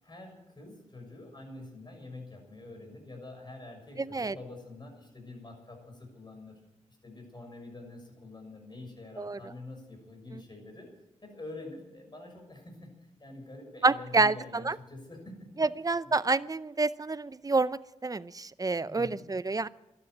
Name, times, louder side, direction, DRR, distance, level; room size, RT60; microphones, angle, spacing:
voice 1, 0.0-6.6 6.9-10.9 11.2-12.9 13.2-15.5 16.0-16.1 18.9-19.2, left 2 dB, 35° left, 3 dB, 6.6 m, -46 dB
voice 2, 4.0-4.3 9.2-9.4 13.8-14.8 15.6-19.7, right 3 dB, 30° right, 17 dB, 0.6 m, -28 dB
12.5 x 11.5 x 9.5 m, 0.95 s
cardioid pair, 50°, 13 cm